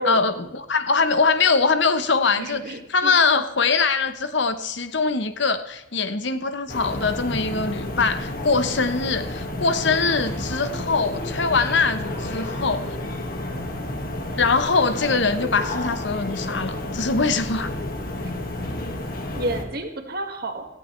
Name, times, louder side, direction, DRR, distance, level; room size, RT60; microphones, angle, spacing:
voice 1, 0.0-13.0 14.4-17.7, left 4 dB, 60° left, 11 dB, 1.0 m, -22 dB
voice 2, 2.4-3.1 19.3-20.7, right 1 dB, 50° right, 4 dB, 1.9 m, -30 dB
sound 1, 6.7-19.6, left 1 dB, 45° left, 1.8 m, -31 dB
17.5 x 14.0 x 3.3 m, 0.95 s
head